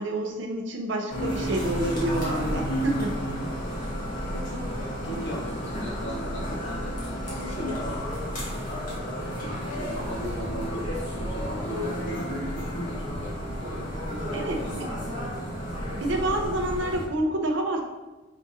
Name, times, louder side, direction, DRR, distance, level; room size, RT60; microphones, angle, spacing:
voice 1, 0.0-3.2 14.3-14.9 15.9-17.8, right 1 dB, 65° right, 3 dB, 0.6 m, -28 dB
sound 1, 1.1-17.1, equal, 45° left, 1.4 m, -32 dB
voice 2, 3.6-4.2 5.0-8.1 8.4-14.9 15.4-15.5, equal, 60° left, -3 dB, 1.2 m, -39 dB
5.1 x 3.5 x 2.8 m, 1.1 s
head